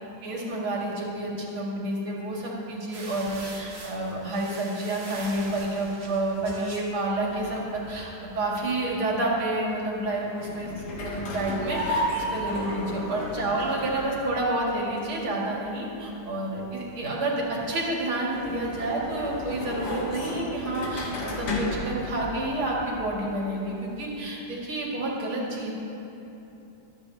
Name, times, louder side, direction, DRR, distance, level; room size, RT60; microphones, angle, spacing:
voice 1, 0.2-10.7 10.9-25.7, right 1 dB, 70° right, -4 dB, 3.1 m, -29 dB
sound 1, 2.9-7.6, right 2 dB, 45° right, 1.6 m, -43 dB
sound 2, 7.3-24.3, left 1 dB, 55° left, 1.8 m, -35 dB
25.0 x 9.9 x 2.8 m, 3.0 s
omnidirectional pair, 2.4 m